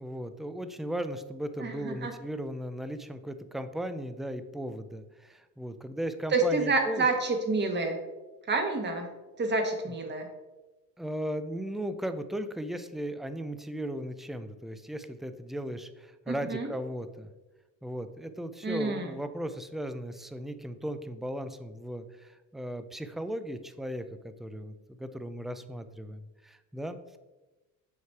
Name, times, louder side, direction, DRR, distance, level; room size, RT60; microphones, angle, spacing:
voice 1, 0.0-7.1 9.9-10.0 11.0-17.3 17.8-24.7 25.0-27.2, equal, ahead, 10 dB, 0.3 m, -37 dB
voice 2, 1.6-2.1 6.3-8.0 8.5-9.1 9.4-10.3 16.3-16.7 18.6-19.1, right 3 dB, 30° right, 4 dB, 1.3 m, -28 dB
8.3 x 3.1 x 4.6 m, 1.1 s
supercardioid pair, 95°, 35 cm